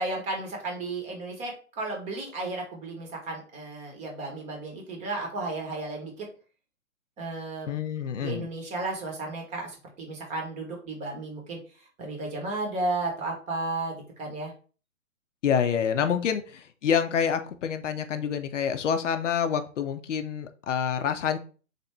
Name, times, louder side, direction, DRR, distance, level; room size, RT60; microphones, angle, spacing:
voice 1, 0.0-6.3 7.2-7.8 8.2-14.5 16.2-16.3, right 2 dB, 15° right, 1 dB, 0.9 m, -34 dB
voice 2, 7.7-8.5 15.4-21.4, left 7 dB, 65° left, 8 dB, 0.6 m, -27 dB
3.4 x 2.7 x 4.2 m, 0.38 s
hypercardioid pair, 130°, 40 cm